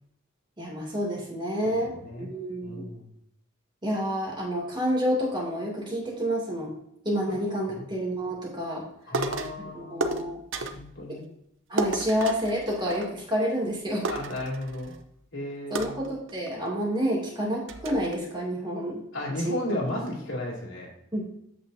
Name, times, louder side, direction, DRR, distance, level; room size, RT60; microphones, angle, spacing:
voice 1, 0.6-2.9 3.8-6.7 7.0-8.8 9.7-10.4 11.1-11.2 11.7-14.1 15.7-19.0 19.3-19.6 21.1-21.3, equal, 25° right, -3 dB, 2.5 m, -29 dB
voice 2, 1.6-2.3 2.6-3.1 7.3-7.4 7.7-7.8 9.1-10.2 10.5-11.2 14.1-14.9 15.3-16.0 19.1-20.9, left 1 dB, 80° left, -2 dB, 2.5 m, -34 dB
sound 1, 9.1-9.6 10.0-10.9 11.8-13.4 13.7-13.8 14.0-15.0 15.8-16.7 17.2-17.3 17.7-18.2, right 2 dB, 75° right, 0.7 m, -32 dB
8.5 x 7.0 x 2.7 m, 0.75 s
head